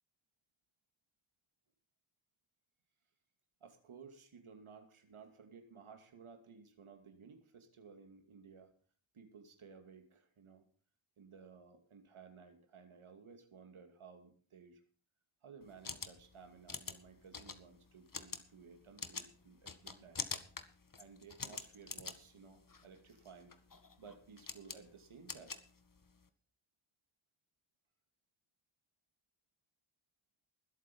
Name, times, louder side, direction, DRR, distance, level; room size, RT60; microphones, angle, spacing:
voice 1, 3.6-8.7 9.1-10.6 11.2-14.8 15.4-20.2 21.0-23.5 24.0-25.6, right 5 dB, 90° right, 6 dB, 2.7 m, -57 dB
sound 1, 15.6-26.3, left 4 dB, 40° left, 1.9 m, -47 dB
20.5 x 8.0 x 5.5 m, 0.43 s
cardioid pair, 45°, 48 cm